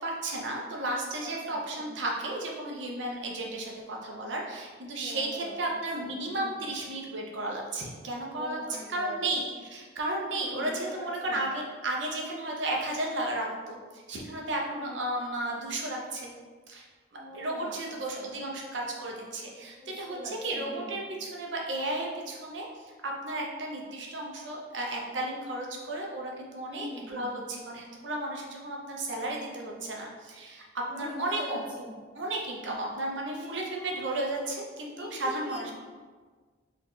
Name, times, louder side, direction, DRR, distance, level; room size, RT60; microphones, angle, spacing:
voice 1, 0.0-16.3 16.7-16.8 17.3-22.7 23.0-30.6 30.9-31.6 32.1-35.7, right 2 dB, 70° right, -1 dB, 0.7 m, -34 dB
voice 2, 1.2-1.9 5.0-6.7 8.3-9.3 10.2-11.4 14.5-15.0 17.1-18.4 19.8-20.9 26.7-27.4 30.9-32.0 33.4-33.9 35.0-35.7, equal, 5° right, -7 dB, 0.8 m, -43 dB
4.0 x 2.8 x 3.1 m, 1.4 s
head